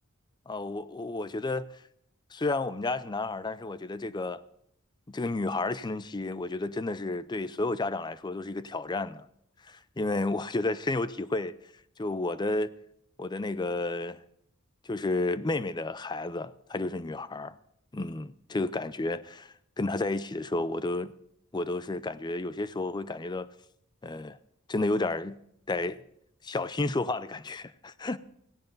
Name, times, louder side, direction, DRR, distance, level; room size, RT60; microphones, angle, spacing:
voice 1, 0.5-1.7 2.3-4.4 5.1-9.3 9.6-11.6 12.0-12.7 13.2-14.2 14.8-17.6 17.9-21.1 21.5-23.5 24.0-24.4 24.7-25.4 25.7-26.0 26.4-28.2, left 2 dB, 20° left, 0.5 m, -31 dB
17.0 x 16.0 x 4.0 m
head